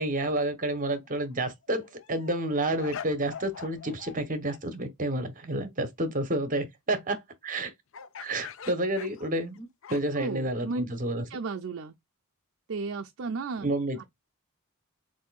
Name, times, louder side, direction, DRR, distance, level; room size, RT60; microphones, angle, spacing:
voice 1, 0.0-7.7 8.2-11.2 13.6-14.0, right 1 dB, 35° right, 1.0 m, -30 dB
sound 1, 0.9-1.2 1.6-4.2 4.5-4.6 7.9-10.3, left 7 dB, 60° left, 0.5 m, -44 dB
voice 2, 10.2-10.8 11.3-12.0 12.7-13.7 14.0-14.1, right 4 dB, 60° right, 0.5 m, -34 dB
7.3 x 2.7 x 2.3 m
head